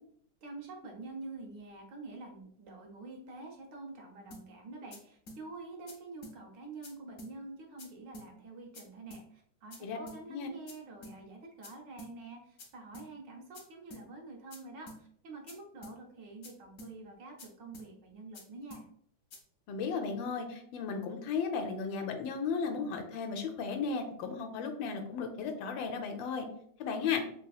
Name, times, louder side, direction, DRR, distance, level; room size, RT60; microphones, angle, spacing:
voice 1, 0.4-18.9, right 3 dB, 70° right, 1 dB, 1.3 m, -47 dB
sound 1, 4.3-4.4 4.9-5.0 5.3-5.4 5.9-6.0 6.2-6.4 6.8-6.9 7.2-7.3 7.8-7.9 8.1-8.3 8.7-8.8 9.1-9.2 9.7-9.8 10.1-10.2 10.7-10.8 11.0-11.2 11.6-11.7 12.0-12.1 12.6-12.7 12.9-13.1 13.5-13.6 13.9-14.0 14.5-14.6 14.9-15.0 15.5-15.6 15.8-16.0 16.4-16.5 16.8-16.9 17.4-17.5 17.7-17.9 18.3-18.4 18.7-18.8 19.3-19.4, left 1 dB, 60° left, 0.9 m, -49 dB
voice 2, 19.7-26.5 26.8-27.2, left 5 dB, 80° left, 5 dB, 1.3 m, -35 dB
3.4 x 2.8 x 2.3 m, 0.66 s
omnidirectional pair, 2.1 m